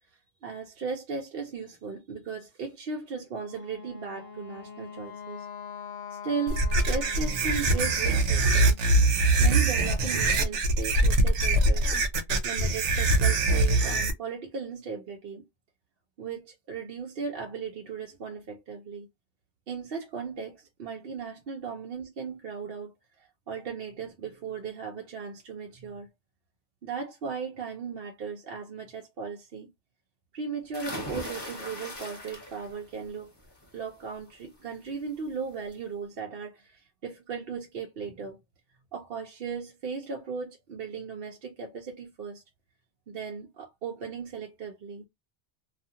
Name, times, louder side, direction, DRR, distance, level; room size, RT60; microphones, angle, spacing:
voice 1, 0.4-5.5 6.2-8.8 9.4-11.9 12.4-15.4 16.2-19.1 19.7-22.9 23.5-26.1 26.8-29.7 30.3-33.3 33.7-38.4 38.9-42.4 43.1-45.1, right 5 dB, 60° right, 0.8 m, -37 dB
Wind instrument woodwind instrument, 3.3-8.3, left 7 dB, 70° left, 0.8 m, -43 dB
sound 1, 6.5-14.1, right 2 dB, 90° right, 0.9 m, -23 dB
sound 2, 30.7-32.8 33.2-33.7 35.0-35.1 35.5-35.6, left 1 dB, 25° left, 0.9 m, -38 dB
2.4 x 2.3 x 2.7 m
omnidirectional pair, 1.2 m